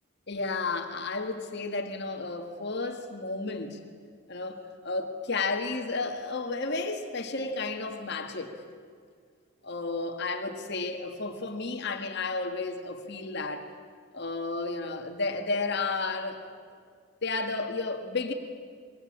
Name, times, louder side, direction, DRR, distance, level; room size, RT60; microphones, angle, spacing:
voice 1, 0.3-3.8 4.3-8.5 9.6-13.7 14.1-16.4 17.2-18.3, left 3 dB, 55° left, 5 dB, 1.8 m, -32 dB
27.5 x 22.5 x 8.7 m, 2.1 s
head